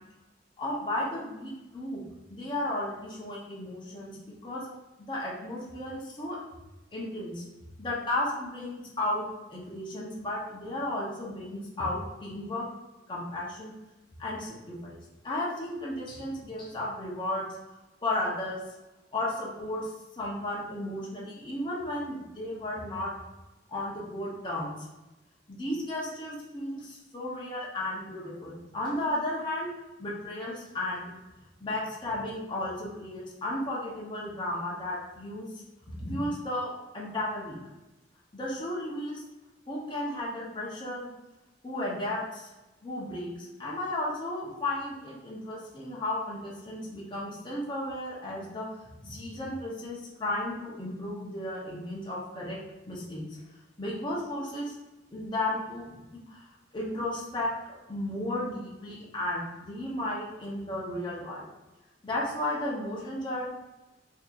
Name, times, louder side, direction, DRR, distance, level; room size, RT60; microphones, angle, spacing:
voice 1, 0.6-2.0 2.3-4.2 4.4-4.6 5.1-6.4 6.9-7.4 7.8-12.7 13.1-13.7 14.2-15.0 15.2-17.5 18.0-18.6 19.1-23.1 23.7-24.7 25.5-29.7 30.0-31.1 31.6-35.5 35.9-37.6 38.3-39.2 39.7-41.1 41.6-42.5 42.8-43.3 43.6-48.7 49.0-52.6 52.9-53.2 53.8-54.7 55.1-56.4 56.7-61.5 62.0-63.5, left 1 dB, 25° left, -5 dB, 0.7 m, -34 dB
4.2 x 2.7 x 2.4 m, 1.0 s
head